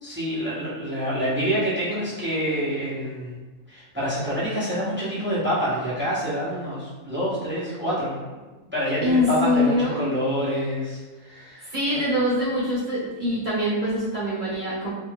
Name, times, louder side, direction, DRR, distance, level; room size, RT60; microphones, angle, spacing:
voice 1, 0.0-3.3 3.7-8.2 8.7-12.0, equal, 15° right, -10 dB, 0.4 m, -27 dB
voice 2, 9.0-10.0 11.6-14.9, left 1 dB, 35° right, -10 dB, 0.9 m, -24 dB
2.6 x 2.3 x 3.3 m, 1.2 s
omnidirectional pair, 1.6 m